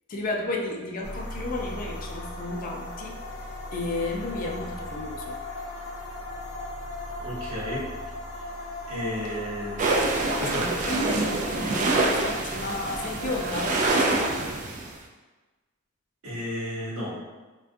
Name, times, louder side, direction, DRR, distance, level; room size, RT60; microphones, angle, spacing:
voice 1, 0.1-3.2 3.7-5.4 10.4-13.7, left 2 dB, 40° left, 0 dB, 0.3 m, -32 dB
sound 1, 1.0-13.9, left 2 dB, 80° left, 0.6 m, -37 dB
voice 2, 7.2-7.9 8.9-9.8 10.4-10.6 16.2-17.2, equal, 80° right, -6 dB, 0.9 m, -32 dB
sound 2, 9.8-14.9, right 2 dB, 35° right, 0.3 m, -26 dB
2.3 x 2.2 x 2.5 m, 1.2 s
head